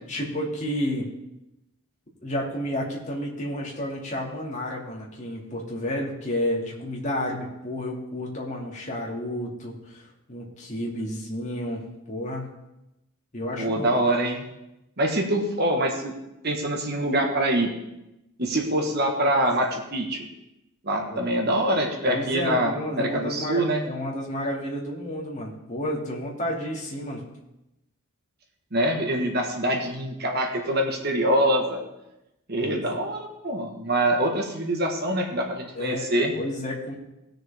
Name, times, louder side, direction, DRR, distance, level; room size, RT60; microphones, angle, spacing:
voice 1, 0.1-1.1 2.2-11.8 12.1-12.5 13.3-13.9 21.1-21.2 22.1-27.2 32.6-32.9 35.7-36.1 36.4-36.9, left 1 dB, 35° left, -3 dB, 2.4 m, -31 dB
voice 2, 13.6-14.4 15.0-16.1 16.4-17.7 18.4-20.3 20.8-23.8 28.7-31.8 32.5-36.3, right 1 dB, 50° right, 2 dB, 1.5 m, -25 dB
18.5 x 6.4 x 3.5 m, 0.91 s
head